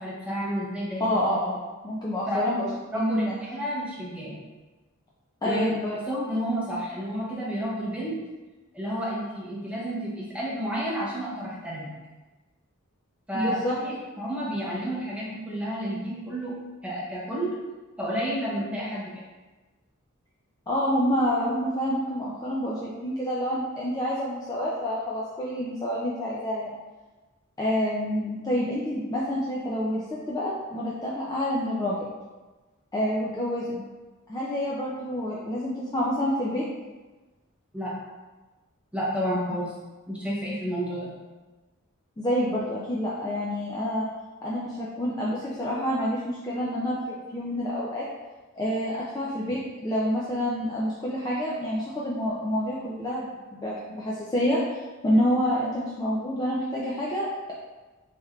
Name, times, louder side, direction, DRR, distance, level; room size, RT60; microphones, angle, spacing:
voice 1, 0.0-1.1 2.3-2.4 2.9-3.2 3.5-4.4 5.4-5.7 6.1-8.2 8.7-11.9 13.3-16.5 16.8-17.5 18.0-19.1 37.7-37.9 38.9-39.7 40.1-41.1, equal, 5° right, -6 dB, 0.7 m, -30 dB
voice 2, 1.0-2.7 2.9-3.3 5.4-6.0 13.3-13.8 20.7-26.7 27.6-32.0 32.9-33.8 34.3-36.6 42.2-44.1 44.4-48.1 48.6-54.6 55.0-57.5, equal, 20° left, -6 dB, 0.3 m, -28 dB
3.2 x 3.2 x 2.3 m, 1.2 s
head